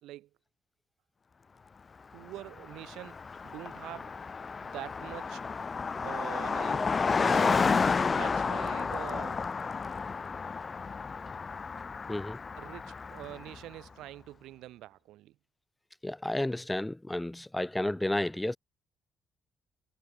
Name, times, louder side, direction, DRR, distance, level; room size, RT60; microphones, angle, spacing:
voice 1, 2.1-3.2 3.4-4.1 4.6-5.4 6.0-6.9 7.2-9.4 12.6-15.3, right 15 dB, 90° right, 4.2 m, -45 dB
Car passing by, 2.3-2.4 2.6-13.6, left 5 dB, 35° left, 1.5 m, -31 dB
voice 2, 16.0-18.6, left 1 dB, 10° left, 0.4 m, -32 dB
cardioid pair, 90°, 0 cm